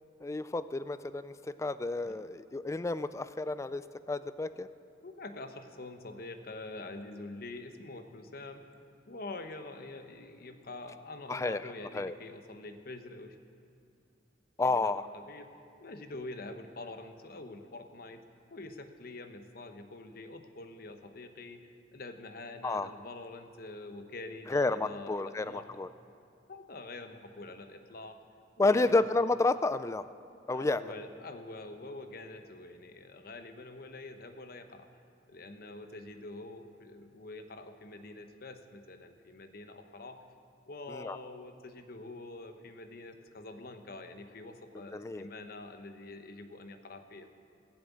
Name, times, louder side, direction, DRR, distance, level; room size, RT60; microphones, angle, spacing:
voice 1, 0.2-4.7 11.3-12.1 14.6-15.1 22.6-22.9 24.5-25.9 28.6-30.0 30.5-30.9 40.9-41.2 44.9-45.3, left 2 dB, 15° left, 14 dB, 0.3 m, -31 dB
voice 2, 5.0-8.6 9.1-13.4 14.7-15.5 15.8-18.2 18.5-25.8 26.5-28.2 28.6-29.0 30.5-34.9 35.3-40.2 40.7-47.3, left 2 dB, 55° left, 7 dB, 0.9 m, -46 dB
15.5 x 7.5 x 8.4 m, 2.5 s
head